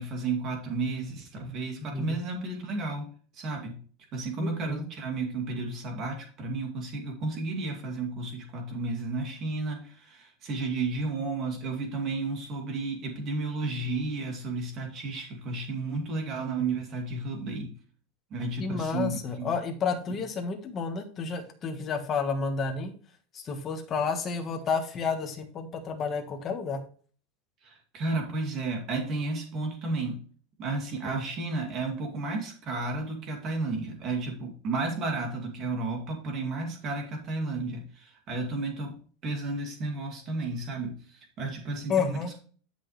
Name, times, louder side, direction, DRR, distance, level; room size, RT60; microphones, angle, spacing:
voice 1, 0.0-3.1 3.3-3.8 4.1-17.7 18.3-19.5 27.6-30.2 30.6-38.9 39.2-42.4, right 3 dB, 30° right, 2 dB, 2.4 m, -32 dB
voice 2, 1.8-2.2 4.4-4.9 18.6-22.9 23.3-26.8 41.9-42.3, left 5 dB, 20° left, 4 dB, 1.4 m, -31 dB
11.0 x 6.2 x 3.3 m, 0.43 s
supercardioid pair, 180°, 0 cm